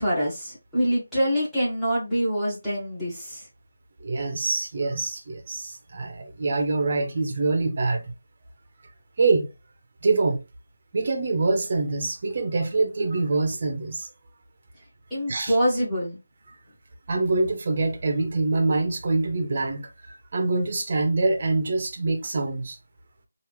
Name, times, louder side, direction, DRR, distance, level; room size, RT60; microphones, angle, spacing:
voice 1, 0.0-3.5 15.1-16.2, equal, ahead, 1.7 m, -25 dB
voice 2, 4.0-8.1 9.2-9.5 10.0-10.4 10.9-14.1 15.3-15.5 17.1-22.8, right 3 dB, 35° right, 1.1 m, -25 dB
4.7 x 2.8 x 3.4 m
figure-of-eight pair, 170°, 0 cm